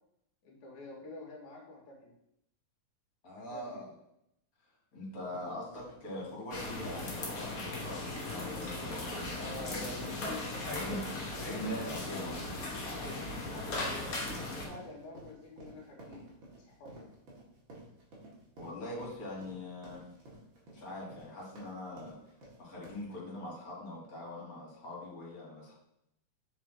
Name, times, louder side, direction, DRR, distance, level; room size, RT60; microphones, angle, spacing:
voice 1, 0.4-2.1 3.4-3.8 9.4-11.0 11.5-11.9 12.8-16.2 16.7-17.1, left 2 dB, 90° left, -1 dB, 3.0 m, -48 dB
voice 2, 3.2-3.9 4.9-9.8 10.6-11.0 11.4-12.6 18.6-20.0 20.7-22.2 22.6-25.7, left 1 dB, 30° left, -4 dB, 2.7 m, -42 dB
sound 1, 5.1-23.2, right 1 dB, 45° right, 2.3 m, -53 dB
sound 2, 6.5-14.7, left 2 dB, 50° left, 1.1 m, -38 dB
7.4 x 5.0 x 3.4 m, 0.79 s
omnidirectional pair, 3.3 m